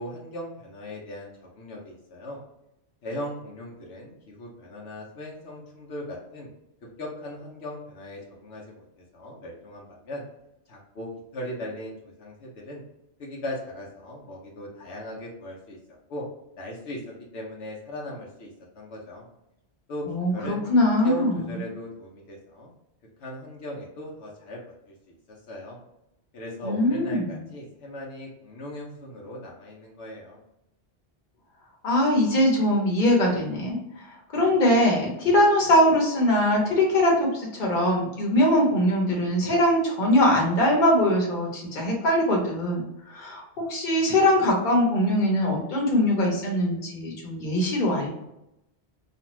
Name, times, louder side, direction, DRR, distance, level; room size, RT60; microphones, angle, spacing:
voice 1, 0.0-2.4 3.0-6.5 7.0-10.2 10.7-12.8 13.2-15.8 16.1-16.2 16.6-18.5 18.7-19.3 19.9-20.1 20.3-20.6 21.0-22.7 23.2-25.8 26.3-30.4, equal, 80° left, -2 dB, 1.0 m, -38 dB
voice 2, 20.1-21.6 26.6-27.5 31.8-48.1, left 1 dB, 50° left, -2 dB, 1.0 m, -22 dB
2.5 x 2.4 x 3.0 m, 0.85 s
omnidirectional pair, 1.1 m